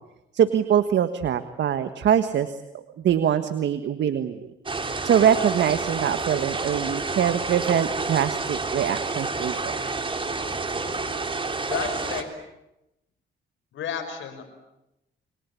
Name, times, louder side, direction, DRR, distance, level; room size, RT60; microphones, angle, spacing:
voice 1, 0.3-2.5 3.0-4.4 5.0-9.8, right 9 dB, 65° right, 10 dB, 1.5 m, -23 dB
sound 1, 4.7-12.2, right 3 dB, 25° right, 3.5 m, -29 dB
voice 2, 11.7-12.3 13.7-14.4, left 7 dB, 75° left, 9 dB, 5.6 m, -31 dB
29.5 x 23.0 x 8.5 m, 0.90 s
cardioid pair, 90°, 20 cm